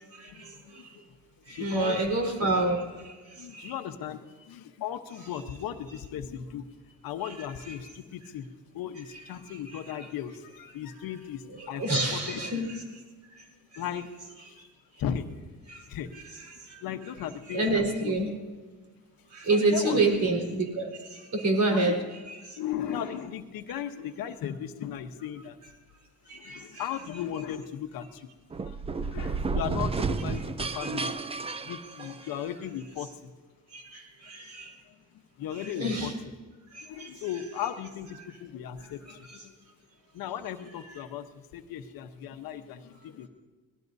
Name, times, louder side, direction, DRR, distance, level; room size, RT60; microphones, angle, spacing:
voice 1, 0.2-1.0 1.5-2.0 3.4-6.7 7.0-8.5 8.7-12.4 13.8-14.1 14.4-14.6 15.0-15.3 15.9-16.2 16.8-18.2 19.5-20.2 21.7-22.0 22.6-25.6 26.3-28.3 28.6-33.3 34.9-35.0 35.4-36.1 36.8-39.5 40.1-43.3, left 9 dB, 70° left, 8 dB, 1.1 m, -37 dB
voice 2, 1.5-2.8 3.5-3.7 9.7-9.8 11.6-12.7 16.1-16.3 17.5-18.3 19.3-20.9 21.3-22.0 22.3-22.4 26.3-26.9 30.8-30.9 34.3-34.6 35.5-36.1 37.0-37.1, right 2 dB, 50° right, 1 dB, 4.4 m, -27 dB
sound 1, 28.5-32.5, right 4 dB, 15° right, 0.4 m, -31 dB
25.0 x 19.0 x 2.7 m, 1.4 s
cardioid pair, 115°, 36 cm